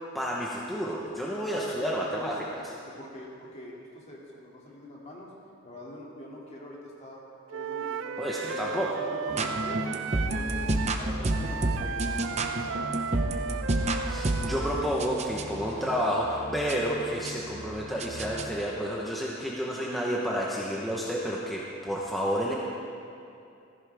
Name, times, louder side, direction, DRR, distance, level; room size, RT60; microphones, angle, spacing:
voice 1, 0.1-2.6 8.2-9.0 13.9-22.5, equal, ahead, -5 dB, 0.9 m, -30 dB
voice 2, 1.6-2.5 2.8-5.3 5.6-7.2 7.5-9.8 10.1-10.7 11.0-13.0, left 1 dB, 35° left, -4 dB, 2.5 m, -44 dB
Wind instrument woodwind instrument, 7.5-15.0, right 7 dB, 65° right, 0.4 m, -35 dB
sound 1, 9.3-18.6, right 1 dB, 35° right, 0.8 m, -31 dB
16.0 x 14.5 x 3.5 m, 2.6 s
head